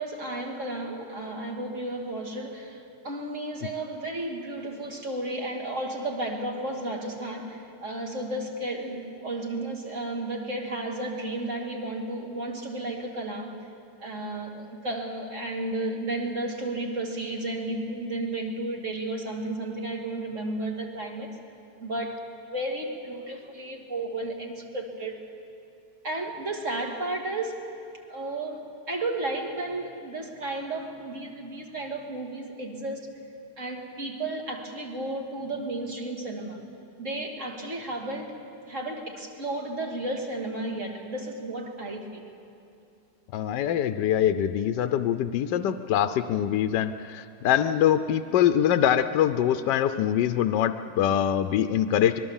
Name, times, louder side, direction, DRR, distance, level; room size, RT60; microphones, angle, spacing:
voice 1, 0.0-13.7 14.0-21.3 21.8-25.2 26.0-27.8 28.1-33.1 33.6-36.6 37.0-38.3 38.7-42.2, right 2 dB, 45° right, 1 dB, 2.7 m, -33 dB
voice 2, 43.3-52.2, left 10 dB, 80° left, 9 dB, 1.3 m, -24 dB
25.0 x 21.0 x 7.2 m, 2.7 s
omnidirectional pair, 1.9 m